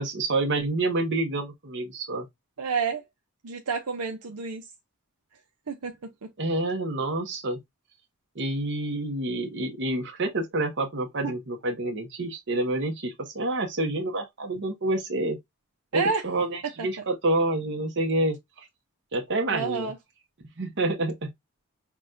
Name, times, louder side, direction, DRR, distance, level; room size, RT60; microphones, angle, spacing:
voice 1, 0.0-2.3 6.4-7.6 8.3-15.4 15.9-18.7 19.1-19.9 20.6-21.3, right 2 dB, 55° right, 1.0 m, -28 dB
voice 2, 2.6-3.0 3.4-4.6 5.7-6.0 6.2-6.3 11.2-11.3 15.9-16.2 16.8-16.9 19.5-19.9, right 5 dB, 90° right, 0.7 m, -29 dB
5.9 x 2.4 x 2.5 m
head